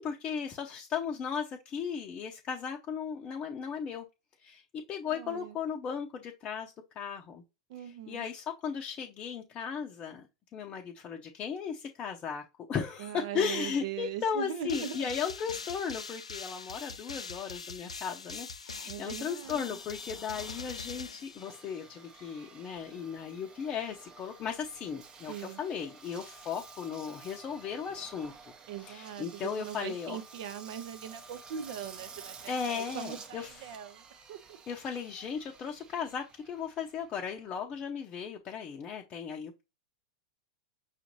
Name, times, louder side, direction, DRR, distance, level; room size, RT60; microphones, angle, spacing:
voice 1, 0.0-4.1 4.4-4.6 4.9-7.4 8.1-10.3 10.5-28.5 28.8-30.2 32.5-33.7 34.7-39.6, left 7 dB, 30° left, 0.6 m, -36 dB
voice 2, 5.1-5.6 7.7-8.2 13.0-15.1 18.9-19.8 25.3-25.6 28.7-34.6, right 9 dB, 55° right, 0.6 m, -41 dB
sound 1, 14.7-22.0, left 4 dB, 90° left, 0.4 m, -43 dB
Engine, 19.4-37.8, right 4 dB, 25° right, 0.8 m, -52 dB
5.6 x 2.5 x 3.0 m
hypercardioid pair, 95°, 3 cm